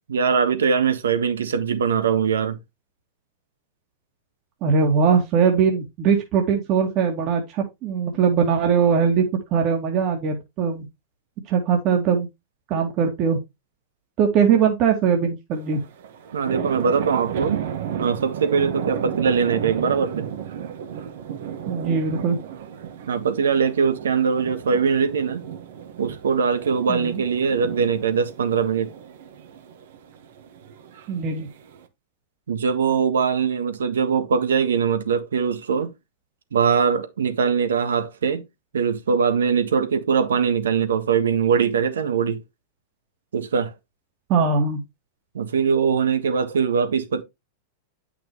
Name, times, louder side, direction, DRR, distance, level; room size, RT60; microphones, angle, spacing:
voice 1, 0.1-2.6 16.3-17.7 18.0-20.3 23.1-25.4 26.0-28.9 32.5-35.9 36.5-38.4 38.7-42.4 43.3-43.7 45.3-47.2, right 6 dB, 90° right, 1.6 m, -22 dB
voice 2, 4.6-9.2 9.5-10.8 11.5-12.3 12.7-13.4 14.2-15.8 21.7-22.4 26.9-27.2 31.1-31.5 44.3-44.8, right 6 dB, 45° right, 2.1 m, -21 dB
sound 1, 15.5-31.9, right 8 dB, 70° right, 1.4 m, -34 dB
9.3 x 6.0 x 3.1 m
hypercardioid pair, 120°, 0 cm